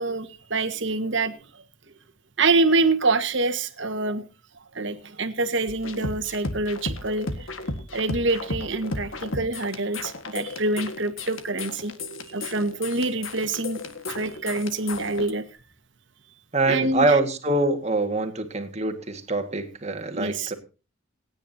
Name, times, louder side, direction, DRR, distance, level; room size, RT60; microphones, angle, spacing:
voice 1, 0.0-1.3 2.4-4.2 4.7-7.3 7.9-11.9 12.3-15.4 16.7-17.2 20.2-20.5, right 3 dB, 60° right, 7 dB, 1.5 m, -26 dB
sound 1, 5.7-15.3, left 2 dB, 70° left, 1.7 m, -34 dB
voice 2, 16.5-20.5, right 2 dB, 30° right, 7 dB, 1.9 m, -24 dB
27.0 x 9.7 x 2.8 m, 0.34 s
head